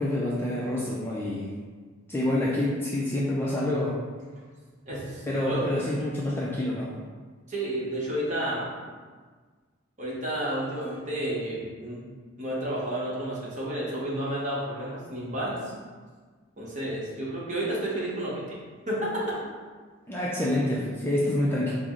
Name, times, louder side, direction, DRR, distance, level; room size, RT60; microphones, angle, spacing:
voice 1, 0.0-1.5 2.1-4.0 5.2-6.9 20.1-21.7, left 1 dB, 10° left, -6 dB, 0.3 m, -27 dB
voice 2, 4.9-5.6 6.0-6.1 7.5-8.7 10.0-12.0 12.4-15.7 16.6-18.4 18.9-19.2, right 1 dB, 35° right, -6 dB, 1.0 m, -31 dB
4.6 x 2.0 x 3.6 m, 1.5 s
head